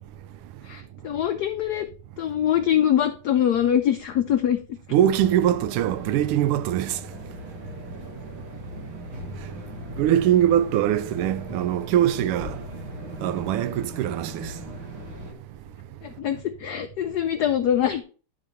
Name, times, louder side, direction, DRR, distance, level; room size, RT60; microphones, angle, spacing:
voice 1, 0.6-1.9 2.2-4.6 16.0-18.0, left 10 dB, 85° left, 0.8 m, -23 dB
voice 2, 4.9-7.0 10.0-12.6 13.2-14.3, right 11 dB, 90° right, 1.5 m, -22 dB
sound 1, 5.0-15.3, equal, 70° right, 2.5 m, -38 dB
10.5 x 4.1 x 4.5 m
omnidirectional pair, 2.4 m